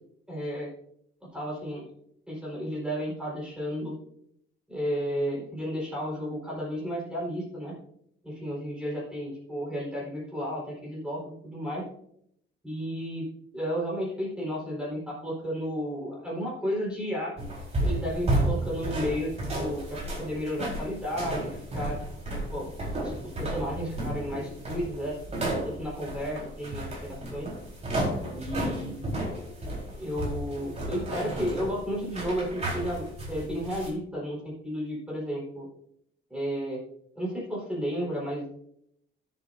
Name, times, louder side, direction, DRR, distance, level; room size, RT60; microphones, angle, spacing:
voice 1, 0.3-0.7 1.3-1.9 2.3-3.9 4.7-7.7 8.2-11.9 12.6-13.3 13.5-17.4 17.8-22.0 22.5-22.7 23.0-23.1 23.4-27.5 28.3-29.2 30.0-35.7 36.3-36.8 37.1-38.6, equal, 5° right, -5 dB, 4.4 m, -33 dB
sound 1, 17.4-33.9, right 1 dB, 30° right, 4.1 m, -32 dB
17.0 x 7.8 x 2.7 m, 0.72 s
cardioid pair, 140°, 21 cm